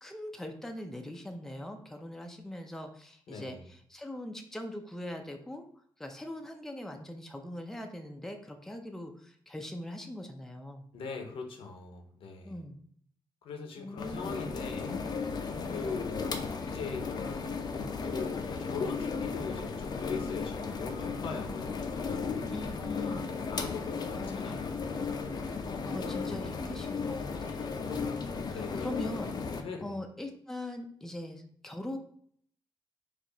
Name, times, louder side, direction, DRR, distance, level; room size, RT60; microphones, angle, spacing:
voice 1, 0.0-5.6 6.0-10.9 12.4-12.8 13.8-14.4 22.5-23.3 24.2-24.6 25.9-27.9 28.1-29.3 29.8-32.0, left 1 dB, 5° left, 4 dB, 0.5 m, -41 dB
voice 2, 3.3-3.7 10.9-12.6 13.4-15.1 15.7-16.3 16.6-17.1 18.0-22.3 23.0-25.1 26.2-26.7 28.5-29.0 29.6-29.9, left 5 dB, 85° left, 3 dB, 0.8 m, -40 dB
sound 1, 14.0-29.6, left 5 dB, 50° left, 0.5 m, -35 dB
4.5 x 2.5 x 3.9 m, 0.62 s
cardioid pair, 110°, 9 cm